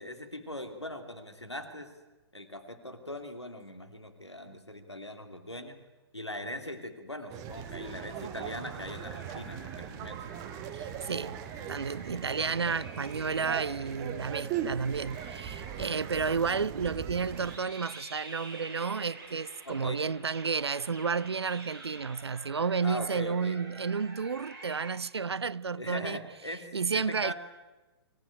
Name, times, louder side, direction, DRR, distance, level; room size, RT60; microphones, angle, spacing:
voice 1, 0.0-1.9 2.3-5.8 6.1-10.2 19.6-20.0 22.8-23.6 25.8-27.3, left 1 dB, 90° left, 2.9 m, -40 dB
sound 1, 7.3-17.6, right 9 dB, 25° right, 1.2 m, -40 dB
sound 2, 7.5-24.9, right 2 dB, 50° right, 7.2 m, -49 dB
voice 2, 10.7-11.4 11.7-26.2 26.7-27.3, right 5 dB, 75° right, 0.7 m, -31 dB
24.0 x 15.5 x 8.9 m
figure-of-eight pair, 125°, 14 cm